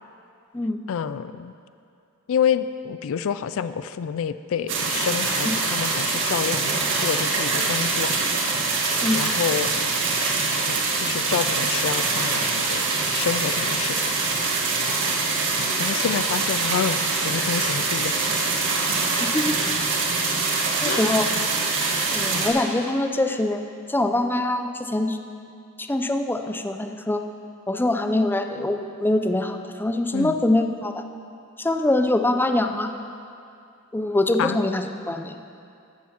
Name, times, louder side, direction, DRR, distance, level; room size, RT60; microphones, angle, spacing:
voice 1, 0.9-1.5 2.3-8.3 9.1-9.7 10.7-12.8 13.1-14.1 15.8-17.0 17.2-18.1 20.8-21.2 22.3-22.5 30.1-30.3 34.4-34.6, left 7 dB, 65° left, 13 dB, 0.4 m, -28 dB
sound 1, 4.7-22.5, right 3 dB, 60° right, 1.8 m, -24 dB
voice 2, 19.2-19.6 20.8-21.3 22.1-25.2 25.8-27.2 27.7-31.0 31.6-32.9 33.9-35.3, left 1 dB, 10° left, 6 dB, 0.5 m, -24 dB
14.5 x 7.0 x 5.9 m, 2.5 s
head